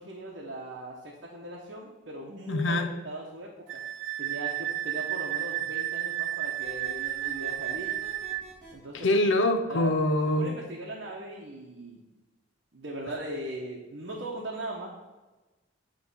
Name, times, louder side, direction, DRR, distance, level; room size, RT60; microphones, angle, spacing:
voice 1, 0.0-3.8 4.2-7.9 8.7-9.2 9.7-10.0 10.4-12.0 12.7-14.9, right 1 dB, 65° right, -3 dB, 0.9 m, -39 dB
voice 2, 2.5-2.9 9.0-10.5, left 1 dB, 80° left, 7 dB, 0.6 m, -24 dB
Wind instrument woodwind instrument, 3.7-8.4, right 14 dB, 80° right, 0.4 m, -32 dB
sound 1, 6.6-8.7, right 1 dB, ahead, 2.4 m, -49 dB
8.5 x 3.2 x 5.4 m, 1.1 s
head